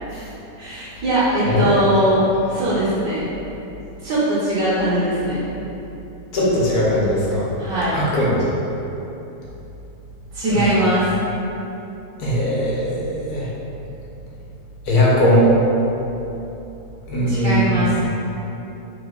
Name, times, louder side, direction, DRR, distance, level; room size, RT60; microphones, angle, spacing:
voice 1, 0.6-2.2 2.5-3.3 4.0-5.5 7.6-7.9 10.3-11.1 17.3-18.0, right 1 dB, 85° right, -11 dB, 1.4 m, -20 dB
voice 2, 1.4-1.8 6.3-7.5 7.9-8.4 10.5-10.8 12.2-13.5 14.9-15.5 17.1-17.9, equal, 70° left, -7 dB, 1.2 m, -19 dB
3.5 x 3.1 x 2.3 m, 3.0 s
omnidirectional pair, 1.8 m